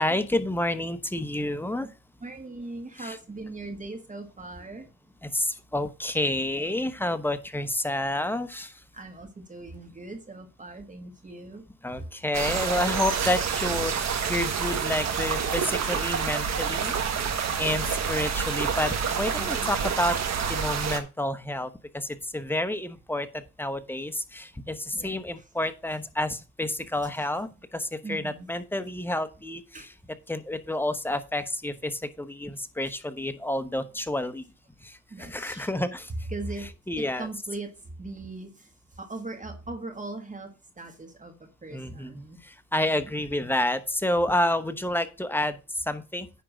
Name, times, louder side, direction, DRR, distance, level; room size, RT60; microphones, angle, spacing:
voice 1, 0.0-1.9 3.0-3.2 5.2-8.8 11.8-16.9 17.6-29.9 30.3-34.4 34.8-36.1 36.9-37.3 41.7-46.4, left 1 dB, 5° left, 10 dB, 1.0 m, -29 dB
voice 2, 2.2-4.9 8.9-11.7 12.0-12.1 19.4-19.7 24.9-25.2 28.0-28.5 29.7-29.9 35.1-35.9 36.3-36.7 37.0-38.7 39.0-42.4 42.9-43.0, right 2 dB, 25° right, 5 dB, 1.7 m, -39 dB
sound 1, 12.3-21.0, right 6 dB, 60° right, 1.6 m, -28 dB
10.0 x 3.7 x 6.3 m, 0.30 s
cardioid pair, 90°, 30 cm